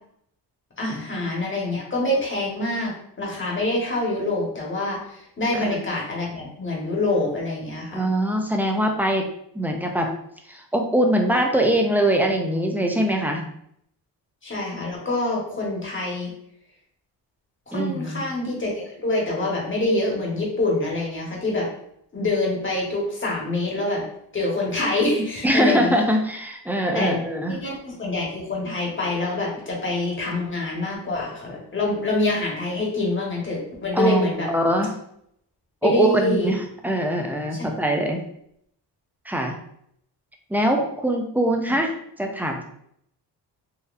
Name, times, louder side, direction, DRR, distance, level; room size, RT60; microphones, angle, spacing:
voice 1, 0.8-8.0 14.4-16.3 17.7-21.7 22.1-24.0 24.3-26.0 26.9-27.2 27.5-34.5 35.8-36.5, left 2 dB, 30° left, -2 dB, 1.4 m, -25 dB
voice 2, 5.5-5.8 7.9-9.3 9.5-10.1 10.5-13.5 17.7-18.2 25.4-27.6 33.9-34.9 35.8-38.2 39.3-39.6 40.5-41.9 42.2-42.6, right 1 dB, 5° right, 2 dB, 0.5 m, -22 dB
4.1 x 2.6 x 2.6 m, 0.71 s
cardioid pair, 90°, 42 cm